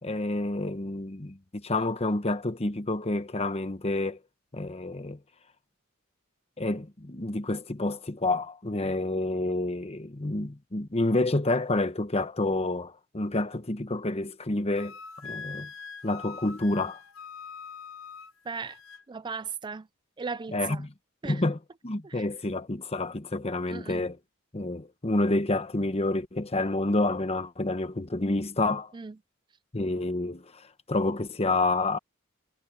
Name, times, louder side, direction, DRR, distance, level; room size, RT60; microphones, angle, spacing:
voice 1, 0.0-4.2 4.5-5.2 6.6-14.9 15.2-15.7 16.0-17.0 20.5-20.9 21.2-21.6 21.8-24.2 24.5-28.9 29.7-32.0, left 2 dB, 30° left, 1.1 m, -29 dB
Wind instrument woodwind instrument, 14.8-19.0, left 5 dB, 70° left, 1.0 m, -43 dB
voice 2, 18.5-18.8 19.1-19.9 20.2-20.8 21.2-21.4 22.0-22.3 23.7-24.0 28.9-29.1, right 5 dB, 20° right, 0.4 m, -37 dB
head